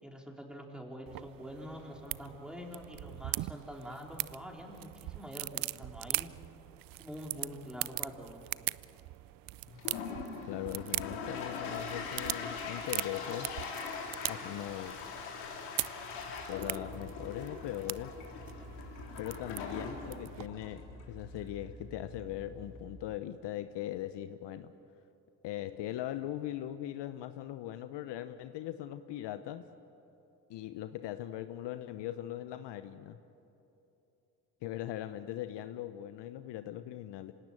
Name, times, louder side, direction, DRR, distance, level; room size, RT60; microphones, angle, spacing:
voice 1, 0.0-6.3 7.0-8.4, equal, ahead, 0 dB, 4.3 m, -45 dB
sound 1, 1.1-20.5, right 18 dB, 45° right, 0.5 m, -41 dB
Toilet flush, 9.7-22.8, left 5 dB, 75° left, 3.8 m, -42 dB
voice 2, 10.5-13.5 14.3-15.0 16.5-18.1 19.2-24.7 25.4-29.7 30.5-33.2 34.6-37.3, left 13 dB, 55° left, 11 dB, 0.9 m, -40 dB
sound 2, 16.1-23.2, right 2 dB, 20° right, 3.8 m, -51 dB
26.0 x 17.5 x 9.1 m, 2.9 s
hypercardioid pair, 60°, 50 cm